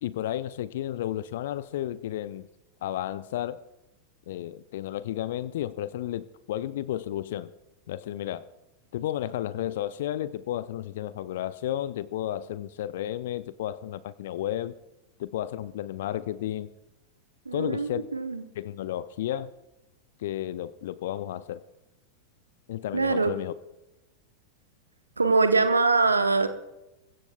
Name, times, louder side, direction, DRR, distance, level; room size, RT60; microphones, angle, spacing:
voice 1, 0.0-2.5 2.8-3.6 4.3-7.5 7.9-8.5 8.9-14.7 15.2-16.7 17.5-18.1 18.6-19.5 20.2-21.6 22.7-23.5, left 12 dB, 55° left, 17 dB, 0.5 m, -32 dB
voice 2, 17.5-18.4 22.9-23.3 25.2-26.5, right 3 dB, 80° right, 9 dB, 1.0 m, -23 dB
23.0 x 15.0 x 2.3 m, 0.97 s
figure-of-eight pair, 90°, 0 cm